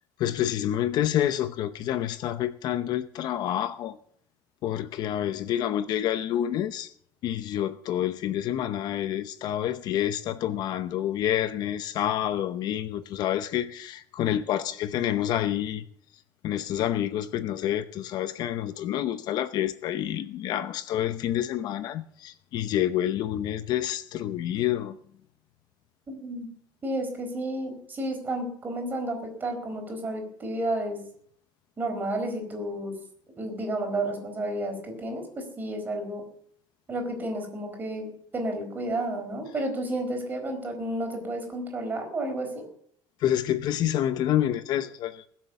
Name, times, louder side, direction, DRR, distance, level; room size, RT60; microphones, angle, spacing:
voice 1, 0.2-4.0 4.6-6.9 7.2-15.8 16.4-25.0 43.2-45.3, left 11 dB, 50° left, 12 dB, 0.8 m, -28 dB
voice 2, 26.1-26.5 26.8-31.0 31.8-32.9 33.4-36.3 36.9-42.7, right 1 dB, 20° right, 4 dB, 4.5 m, -31 dB
21.0 x 7.7 x 7.0 m, 0.63 s
cardioid pair, 160°, 9 cm